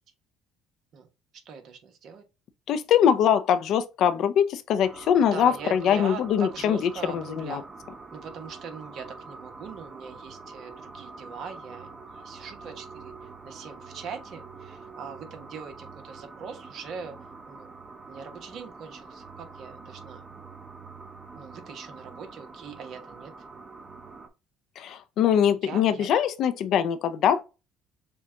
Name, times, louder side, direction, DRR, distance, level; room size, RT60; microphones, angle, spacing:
voice 1, 1.4-2.2 5.3-7.6 8.1-13.1 13.4-17.7 18.1-20.2 21.3-23.5 25.5-26.1, right 6 dB, 55° right, 1.2 m, -41 dB
voice 2, 2.7-7.6 24.8-27.4, left 8 dB, 65° left, 0.6 m, -23 dB
sound 1, 4.8-24.3, right 4 dB, 30° right, 1.0 m, -45 dB
6.9 x 2.4 x 2.8 m
supercardioid pair, 95°, 0 cm